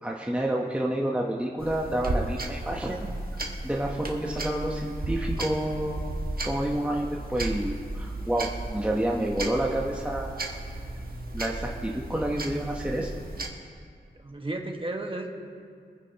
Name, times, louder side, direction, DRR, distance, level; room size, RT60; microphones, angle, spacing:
voice 1, 0.0-3.1 3.6-6.1 6.4-10.4 11.3-13.1, right 1 dB, 5° right, -1 dB, 1.0 m, -29 dB
sound 1, 1.6-13.5, right 2 dB, 55° right, 1.4 m, -34 dB
voice 2, 14.2-15.3, right 2 dB, 30° right, 2 dB, 1.5 m, -33 dB
25.0 x 9.8 x 2.9 m, 2.2 s
wide cardioid pair, 75°, 18 cm